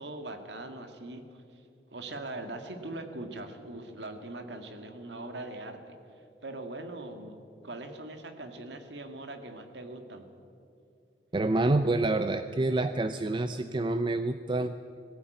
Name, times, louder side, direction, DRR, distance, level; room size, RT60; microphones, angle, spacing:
voice 1, 0.0-1.6 1.9-10.3, right 2 dB, 70° right, 7 dB, 1.9 m, -41 dB
voice 2, 11.3-14.8, right 2 dB, 25° right, 10 dB, 0.5 m, -27 dB
18.5 x 15.5 x 9.2 m, 2.5 s
head